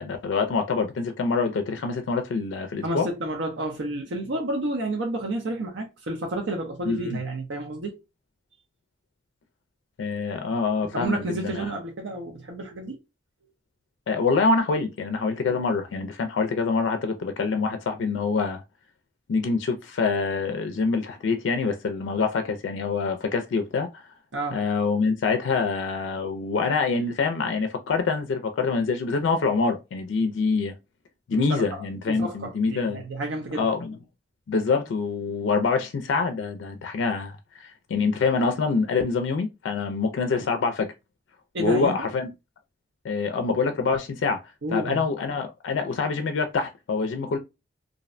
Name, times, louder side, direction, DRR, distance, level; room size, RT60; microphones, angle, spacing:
voice 1, 0.0-3.1 6.8-7.2 10.0-11.7 14.1-18.6 19.3-24.1 24.5-30.7 31.3-33.0 33.5-34.0 34.5-40.9 41.6-42.3 43.0-47.4, left 4 dB, 80° left, 0.3 m, -25 dB
voice 2, 2.8-8.0 10.9-13.0 15.5-15.6 24.3-24.6 31.3-33.7 41.5-42.1 44.6-45.0, right 1 dB, 75° right, 0.6 m, -30 dB
2.5 x 2.1 x 2.4 m
head